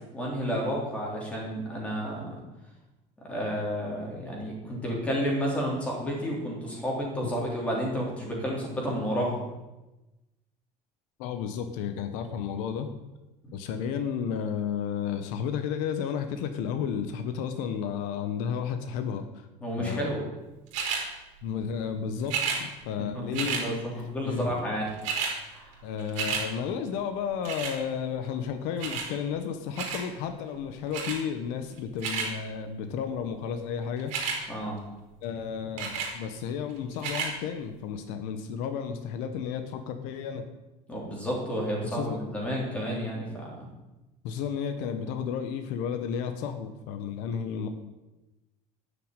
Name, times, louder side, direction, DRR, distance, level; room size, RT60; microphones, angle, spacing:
voice 1, 0.1-2.4 3.3-9.4 13.4-13.5 19.6-20.2 23.1-23.2 23.5-24.9 25.5-25.7 34.5-34.8 40.9-43.5, equal, 10° left, -3 dB, 3.7 m, -31 dB
voice 2, 11.2-12.9 13.5-19.3 19.8-20.1 21.4-24.6 25.8-34.1 35.2-40.4 41.8-42.2 44.2-47.7, left 7 dB, 80° left, 7 dB, 1.3 m, -32 dB
sound 1, 20.7-21.0 22.2-22.6 23.3-23.7 24.6-24.7 24.9-25.4 25.7-26.5 27.5-27.8 28.8-29.1 29.8-30.1 30.9-31.2 31.8-32.3 34.0-34.4 35.8-36.1 36.9-37.3 38.0-38.1, right 6 dB, 65° right, 4.1 m, -31 dB
11.5 x 6.8 x 9.1 m, 1.0 s
cardioid pair, 180°, 13 cm